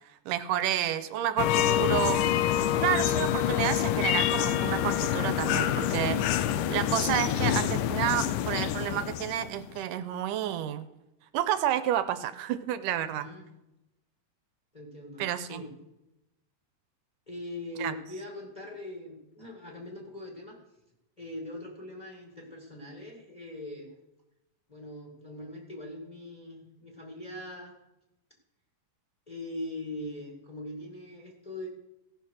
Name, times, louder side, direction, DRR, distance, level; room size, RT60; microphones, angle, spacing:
voice 1, 0.3-2.2 2.8-6.4 6.7-10.9 11.3-13.3 15.2-15.6 17.8-17.9, right 11 dB, 85° right, 12 dB, 2.2 m, -30 dB
sound 1, 1.4-9.7, left 11 dB, 85° left, 2.2 m, -27 dB
voice 2, 13.1-13.5 14.7-15.7 17.3-20.6 21.2-23.9 24.7-27.7 29.3-31.7, left 1 dB, 15° left, -1 dB, 1.5 m, -41 dB
17.0 x 5.7 x 6.4 m, 0.93 s
omnidirectional pair, 3.8 m